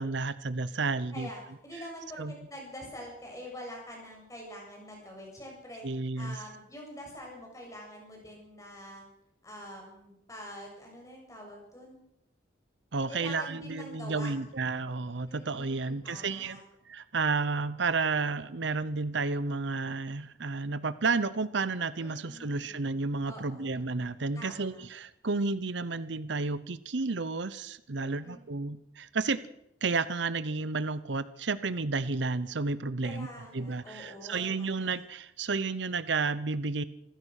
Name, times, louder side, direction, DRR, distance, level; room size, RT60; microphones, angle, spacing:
voice 1, 0.0-1.3 2.2-2.4 5.8-6.4 12.9-16.6 16.9-29.4 29.8-33.3 33.5-36.8, right 4 dB, 70° right, 16 dB, 0.8 m, -31 dB
voice 2, 1.1-5.8 6.2-9.1 9.4-12.0 13.1-14.3 14.6-14.8 15.2-16.6 22.0-22.7 23.2-23.7 24.3-24.8 27.9-28.4 33.0-35.0, equal, 15° left, 0 dB, 7.8 m, -45 dB
26.5 x 15.0 x 6.5 m, 0.81 s
head